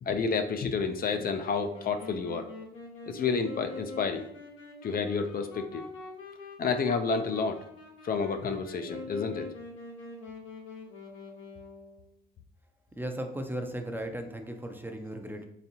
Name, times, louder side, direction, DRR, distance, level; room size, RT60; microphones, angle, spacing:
voice 1, 0.0-2.5 3.1-4.3 4.8-5.8 6.6-7.6 8.0-9.5, left 5 dB, 50° left, 8 dB, 0.4 m, -30 dB
Wind instrument woodwind instrument, 1.2-12.1, left 3 dB, 80° left, 0.9 m, -45 dB
voice 2, 13.0-15.5, right 1 dB, 10° right, 5 dB, 0.5 m, -36 dB
4.0 x 3.4 x 2.8 m, 0.72 s
cardioid pair, 90°, 20 cm